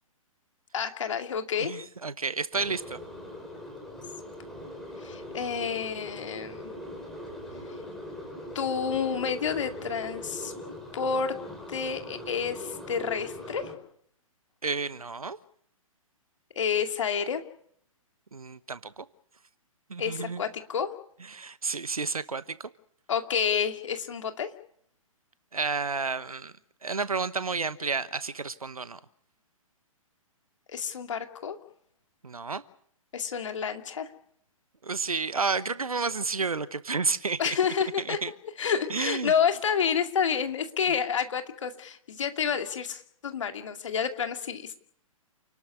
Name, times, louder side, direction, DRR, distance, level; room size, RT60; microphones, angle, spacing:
voice 1, 0.7-1.8 5.0-6.7 8.5-10.5 10.9-11.4 11.7-13.7 16.6-17.4 20.0-21.0 23.1-24.5 30.7-31.6 33.1-34.1 37.4-38.2 38.6-44.7, left 7 dB, 60° left, 7 dB, 2.5 m, -29 dB
voice 2, 1.6-3.0 14.6-15.4 18.3-19.0 19.9-20.4 21.3-22.7 25.5-26.5 26.8-29.0 32.2-32.6 34.8-37.6 38.1-38.3 38.9-39.3, right 4 dB, 80° right, 16 dB, 1.0 m, -31 dB
sound 1, 2.5-13.7, left 1 dB, ahead, 4.8 m, -41 dB
29.0 x 12.5 x 9.5 m, 0.65 s
figure-of-eight pair, 120°, 18 cm